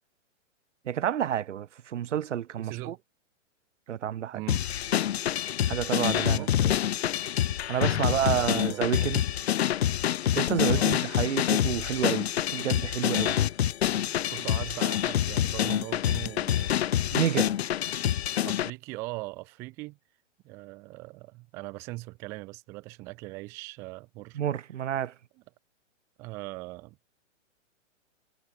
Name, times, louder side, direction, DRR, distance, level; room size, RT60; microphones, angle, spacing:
voice 1, 0.9-3.0 3.9-4.4 5.7-6.5 7.7-9.2 10.4-13.4 17.1-17.5 24.3-25.1, right 10 dB, 70° right, 0.9 m, -29 dB
voice 2, 2.6-3.0 4.3-4.6 6.3-6.8 7.9-8.9 10.7-11.0 14.1-17.1 18.4-20.0 20.4-24.4 26.2-27.0, right 23 dB, 5° right, 0.7 m, -40 dB
sound 1, 4.5-18.7, left 11 dB, 55° left, 0.5 m, -27 dB
hypercardioid pair, 175°, 38 cm